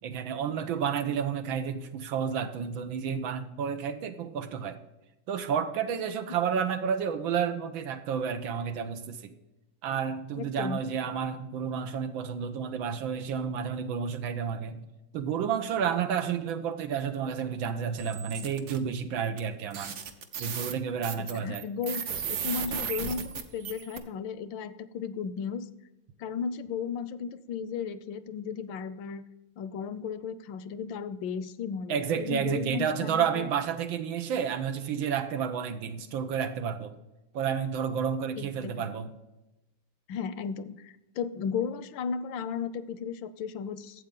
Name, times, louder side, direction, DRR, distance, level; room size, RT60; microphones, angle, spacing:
voice 1, 0.0-4.8 5.3-9.3 9.8-14.9 15.1-20.0 20.4-21.7 31.9-36.9 37.3-39.1, right 7 dB, 90° right, 8 dB, 1.7 m, -31 dB
voice 2, 10.4-10.8 21.4-25.7 26.2-29.2 29.6-33.5 38.4-38.9 40.1-44.0, left 6 dB, 80° left, 14 dB, 1.4 m, -35 dB
sound 1, 18.0-18.8 19.4-19.5 19.7-24.0, right 7 dB, 60° right, 1.3 m, -35 dB
12.0 x 8.1 x 3.8 m, 0.98 s
omnidirectional pair, 2.1 m